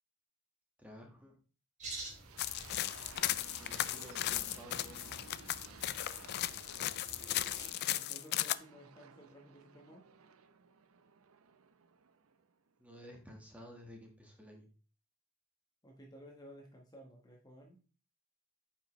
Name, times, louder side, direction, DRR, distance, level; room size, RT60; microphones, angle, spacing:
voice 1, 0.8-1.4 2.4-2.7 3.6-5.2 12.8-14.7, left 1 dB, 5° right, 1 dB, 1.5 m, -53 dB
sound 1, 1.8-7.7, right 2 dB, 35° right, 2.5 m, -51 dB
sound 2, 1.8-12.8, right 6 dB, 75° right, 0.6 m, -56 dB
sound 3, 2.4-8.5, left 14 dB, 50° left, 0.3 m, -36 dB
voice 2, 8.0-10.0 15.8-17.8, equal, 20° left, 1 dB, 1.2 m, -55 dB
8.9 x 5.4 x 3.1 m, 0.37 s
head